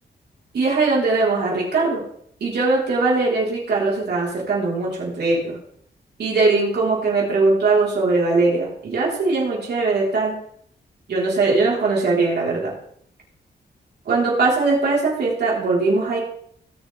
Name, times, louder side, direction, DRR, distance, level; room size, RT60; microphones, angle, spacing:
voice 1, 0.5-2.0 2.4-5.6 6.2-10.3 11.1-12.7 14.1-16.2, right 3 dB, 65° right, -4 dB, 4.4 m, -20 dB
18.5 x 6.9 x 3.6 m, 0.67 s
wide cardioid pair, 175°, 18 cm